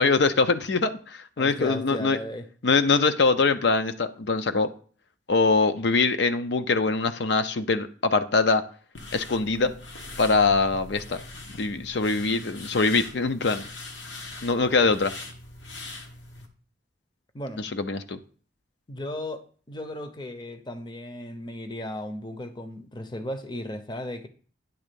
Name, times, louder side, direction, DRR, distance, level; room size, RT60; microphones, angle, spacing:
voice 1, 0.0-2.2 2.6-4.7 5.3-8.6 9.1-9.8 10.2-11.2 11.6-13.6 14.4-15.1 17.6-18.2, left 4 dB, 65° left, 0.5 m, -23 dB
voice 2, 1.4-2.5 17.3-17.6 18.9-24.3, left 1 dB, 25° left, 0.7 m, -35 dB
sound 1, 8.9-16.5, left 2 dB, 80° left, 1.4 m, -42 dB
10.0 x 3.6 x 6.8 m
head